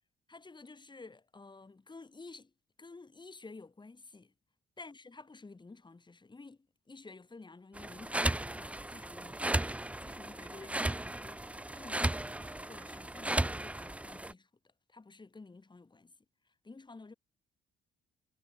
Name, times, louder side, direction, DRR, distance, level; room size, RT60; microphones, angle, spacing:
voice 1, 0.3-2.5 2.8-4.3 4.8-6.6 6.9-9.5 10.0-14.5 14.9-16.1 16.6-17.1, left 3 dB, 25° left, 4.6 m, -52 dB
sound 1, 7.7-14.3, right 1 dB, 5° right, 0.7 m, -35 dB
cardioid pair, 90°, 20 cm